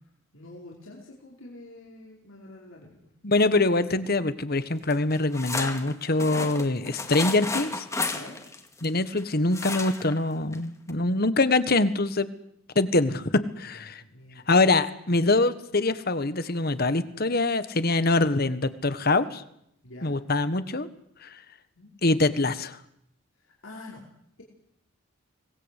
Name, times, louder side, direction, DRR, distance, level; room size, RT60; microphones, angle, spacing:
voice 1, 0.3-3.1 8.1-8.4 13.5-14.5 19.8-20.1 21.7-21.9 23.4-24.0, left 2 dB, 80° left, -3 dB, 4.8 m, -46 dB
voice 2, 3.2-7.8 8.8-12.3 12.7-14.0 14.5-19.4 20.0-20.9 21.2-21.4 22.0-22.8, left 2 dB, 50° left, 13 dB, 1.4 m, -24 dB
sound 1, 4.9-9.2 9.5-10.2 10.5-10.6 10.9-11.0, left 3 dB, 15° left, 2.1 m, -33 dB
25.5 x 19.5 x 8.4 m, 0.75 s
head